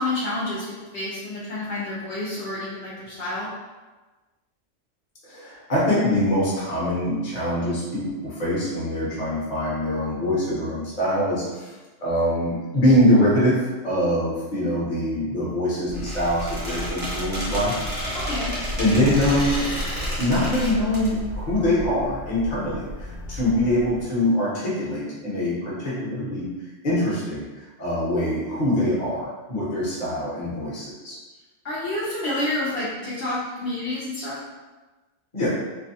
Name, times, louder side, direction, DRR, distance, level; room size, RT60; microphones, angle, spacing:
voice 1, 0.0-3.5 18.1-18.5 23.2-23.3 31.6-34.4, left 1 dB, 65° left, -8 dB, 0.8 m, -29 dB
voice 2, 5.2-11.7 12.0-17.7 18.8-19.7 20.2-26.5 26.8-27.4 27.8-31.2 35.3-35.5, left 1 dB, 40° left, -7 dB, 0.9 m, -23 dB
Squeak, 15.9-21.1, equal, 10° right, 0.7 m, -32 dB
sound 1, 15.9-24.1, left 1 dB, 75° right, 0.9 m, -33 dB
2.6 x 2.2 x 2.7 m, 1.2 s
omnidirectional pair, 1.3 m